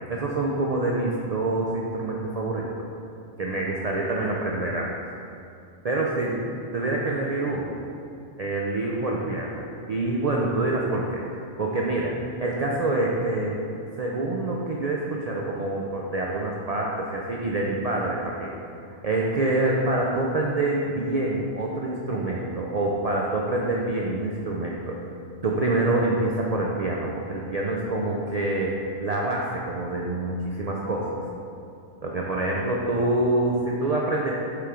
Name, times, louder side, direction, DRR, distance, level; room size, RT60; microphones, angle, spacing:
voice 1, 0.0-2.7 3.4-4.9 5.8-7.8 8.4-11.2 11.6-13.6 14.0-18.5 19.0-25.0 25.4-31.1 32.0-34.3, right 2 dB, 60° right, -3 dB, 0.4 m, -26 dB
6.6 x 4.6 x 3.7 m, 2.5 s
omnidirectional pair, 1.3 m